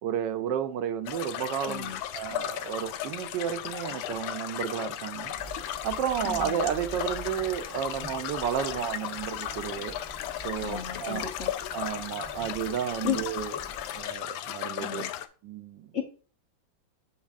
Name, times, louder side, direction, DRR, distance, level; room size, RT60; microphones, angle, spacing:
voice 1, 0.0-5.4 5.8-9.9 10.4-11.3 11.7-13.5 13.9-15.1 15.4-15.9, right 9 dB, 75° right, 1.1 m, -32 dB
sound 1, 1.0-15.3, left 11 dB, 80° left, 1.3 m, -35 dB
voice 2, 1.7-2.0 6.2-6.6 10.6-11.5 13.0-13.2 14.8-15.1 15.9-16.0, left 9 dB, 55° left, 0.8 m, -33 dB
sound 2, 5.4-14.0, right 1 dB, 20° left, 0.6 m, -46 dB
12.5 x 4.6 x 2.4 m
omnidirectional pair, 2.2 m